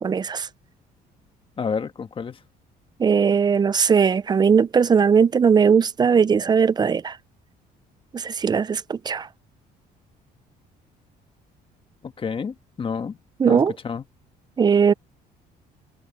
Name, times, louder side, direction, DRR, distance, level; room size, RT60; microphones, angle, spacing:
voice 1, 0.0-0.5 3.0-7.2 8.1-9.3 13.4-13.7 14.6-14.9, right 6 dB, 25° right, 0.5 m, -19 dB
voice 2, 1.6-2.4 12.0-13.2 13.5-14.0, left 6 dB, 30° left, 1.5 m, -29 dB
cardioid pair, 110°, 17 cm